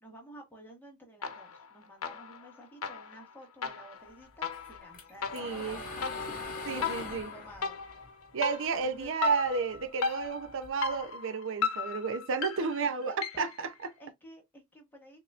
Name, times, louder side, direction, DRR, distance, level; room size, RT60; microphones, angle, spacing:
voice 1, 0.0-6.1 6.5-7.8 8.8-9.1 12.6-12.8 13.0-13.5 14.0-15.2, equal, 10° left, 1.7 m, -52 dB
sound 1, 1.2-1.7 2.0-13.6, left 5 dB, 75° left, 0.9 m, -37 dB
sound 2, 4.5-9.1 9.4-11.0, left 3 dB, 40° left, 1.8 m, -42 dB
voice 2, 5.3-5.8 6.7-7.3 8.3-13.9, right 5 dB, 65° right, 0.6 m, -32 dB
6.9 x 2.9 x 2.4 m
head